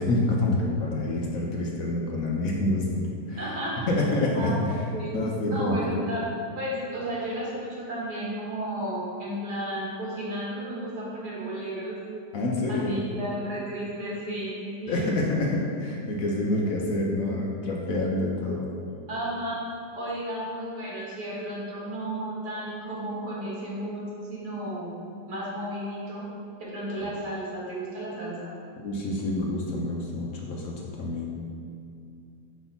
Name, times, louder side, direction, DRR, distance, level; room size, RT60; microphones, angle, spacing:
voice 1, 0.0-3.4 3.9-4.8 5.1-5.9 12.3-13.0 14.9-18.7 28.8-31.3, left 2 dB, 65° left, -2 dB, 1.0 m, -27 dB
voice 2, 3.4-3.8 4.3-5.1 5.5-12.0 12.7-15.3 19.1-19.6 20.0-24.9 25.3-26.2 26.6-28.5, right 1 dB, 70° right, -7 dB, 2.3 m, -33 dB
4.8 x 4.1 x 5.6 m, 2.6 s
omnidirectional pair, 1.8 m